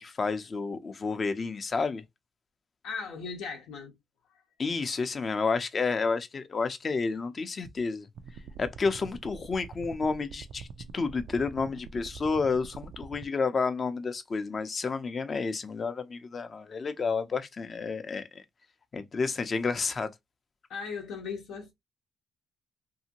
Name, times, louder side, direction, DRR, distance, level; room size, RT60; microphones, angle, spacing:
voice 1, 0.0-2.0 4.6-8.1 8.6-10.7 10.9-18.4 18.9-20.1, left 4 dB, 40° left, 0.5 m, -30 dB
voice 2, 2.8-4.0 20.7-21.7, left 5 dB, 85° left, 0.8 m, -37 dB
sound 1, 8.1-13.2, right 5 dB, 65° right, 0.3 m, -45 dB
2.7 x 2.5 x 2.8 m
cardioid pair, 90°, 0 cm